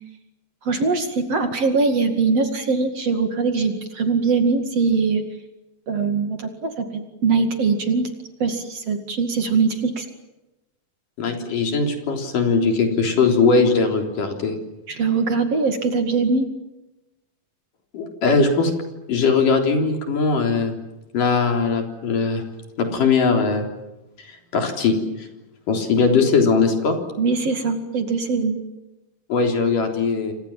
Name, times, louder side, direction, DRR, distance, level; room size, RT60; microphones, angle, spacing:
voice 1, 0.6-5.2 5.9-8.1 8.4-10.1 14.9-16.5 27.2-28.6, right 4 dB, 45° right, 6 dB, 3.0 m, -22 dB
voice 2, 11.2-14.6 17.9-18.7 19.1-20.8 21.1-22.4 22.8-23.7 24.5-25.3 25.7-27.2 29.3-30.3, left 4 dB, 65° left, 4 dB, 5.3 m, -20 dB
29.5 x 25.5 x 7.4 m, 1.0 s
omnidirectional pair, 4.2 m